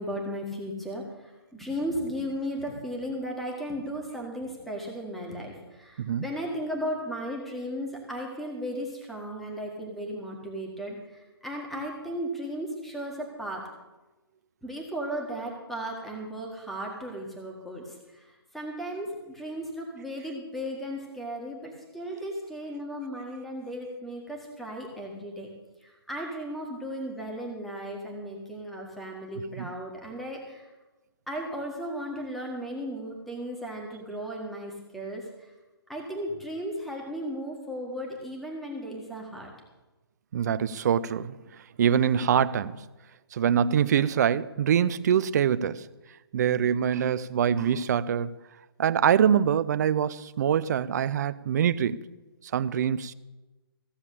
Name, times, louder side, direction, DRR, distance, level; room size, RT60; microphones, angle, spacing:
voice 1, 0.0-13.6 14.6-25.5 25.8-30.7 31.3-35.5 35.9-39.5, equal, ahead, 1.7 m, -35 dB
voice 2, 40.3-41.4 41.8-42.8 43.3-45.9 46.3-48.3 48.8-52.0 52.5-53.1, right 8 dB, 45° right, 0.6 m, -24 dB
15.5 x 7.1 x 8.4 m
hypercardioid pair, 155°, 13 cm